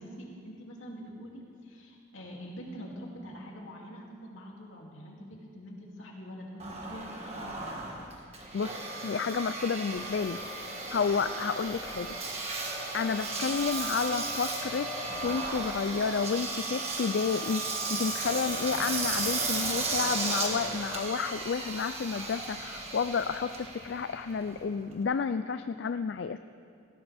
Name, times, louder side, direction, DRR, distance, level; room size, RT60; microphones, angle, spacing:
voice 1, 0.0-7.8, equal, 80° left, -2 dB, 2.7 m, -45 dB
Engine, 6.6-25.0, right 3 dB, 30° right, 1.8 m, -35 dB
voice 2, 8.5-12.1 12.9-26.4, left 5 dB, 60° left, 10 dB, 0.4 m, -31 dB
18.5 x 16.5 x 3.5 m, 2.3 s
head